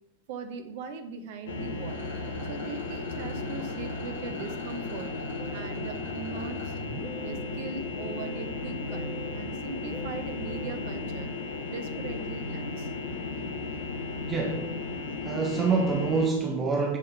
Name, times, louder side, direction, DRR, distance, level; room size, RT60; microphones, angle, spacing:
voice 1, 0.3-2.0 2.4-5.1 5.5-6.8 7.2-9.1 9.3-11.3 11.7-12.9, right 5 dB, 50° right, 7 dB, 1.6 m, -40 dB
sound 1, 1.5-16.3, left 3 dB, 65° left, 1.5 m, -35 dB
Rattle, 1.8-6.8, right 1 dB, 70° right, 4.7 m, -47 dB
Musical instrument, 5.4-12.2, equal, ahead, 1.0 m, -46 dB
voice 2, 14.3-14.8 15.2-17.0, right 4 dB, 20° right, 2 dB, 1.6 m, -26 dB
10.5 x 6.5 x 6.8 m, 0.87 s
figure-of-eight pair, 90°, 0 cm